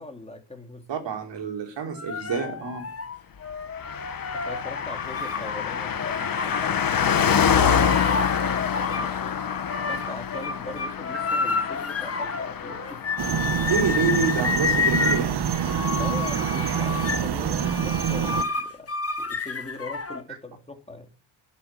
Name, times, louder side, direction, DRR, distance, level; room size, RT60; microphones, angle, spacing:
voice 1, 0.0-0.9 4.3-9.4 9.7-13.0 15.7-18.9 19.2-21.1, left 2 dB, 15° left, 4 dB, 3.3 m, -41 dB
voice 2, 0.9-2.9 13.7-15.3, right 5 dB, 75° right, 3 dB, 3.6 m, -27 dB
sound 1, 1.9-6.6 7.0-9.1 9.4-20.2, left 4 dB, 30° left, 1.4 m, -30 dB
Car passing by, 3.8-15.6 15.9-16.0, left 7 dB, 50° left, 1.4 m, -27 dB
sound 2, 13.2-18.4, right 8 dB, 60° right, 1.5 m, -26 dB
11.5 x 9.0 x 9.2 m, 0.39 s
cardioid pair, 95°, 44 cm